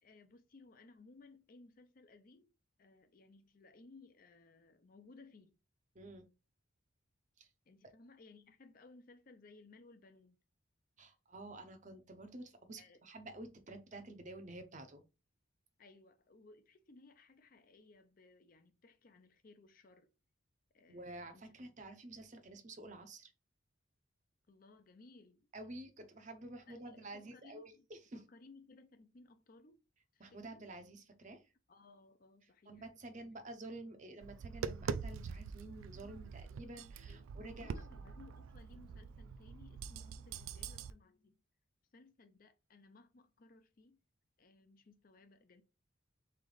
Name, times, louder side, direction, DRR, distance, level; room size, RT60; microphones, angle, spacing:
voice 1, 0.0-2.5 2.8-5.6 7.7-10.4 12.8-13.0 15.8-20.1 20.7-21.4 24.5-25.5 26.7-27.9 28.1-29.8 30.1-30.6 31.7-33.2 37.1-41.4 41.9-44.0 44.4-45.6, left 3 dB, 45° left, 0.5 m, -61 dB
voice 2, 5.9-6.3 7.4-7.5 11.0-15.0 20.9-23.3 25.5-28.2 30.2-31.5 32.7-37.7, right 2 dB, 35° right, 0.6 m, -50 dB
Tap, 34.2-40.9, right 6 dB, 85° right, 0.3 m, -44 dB
3.7 x 3.3 x 3.9 m
head